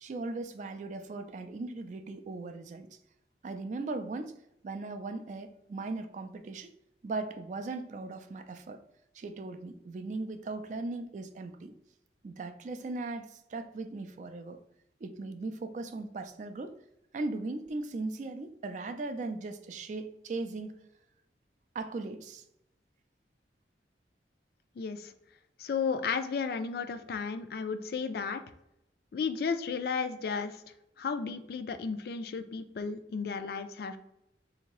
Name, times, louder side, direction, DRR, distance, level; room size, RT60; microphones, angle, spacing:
voice 1, 0.0-3.0 3.4-4.3 4.6-6.7 7.0-8.8 9.1-11.7 12.2-14.6 15.0-16.7 17.1-20.8 21.7-22.4, right 3 dB, 45° right, 8 dB, 0.3 m, -38 dB
voice 2, 24.8-25.1 25.6-28.4 29.1-30.6 31.0-34.0, left 5 dB, 60° left, 10 dB, 0.3 m, -33 dB
3.4 x 2.7 x 2.9 m, 0.83 s
head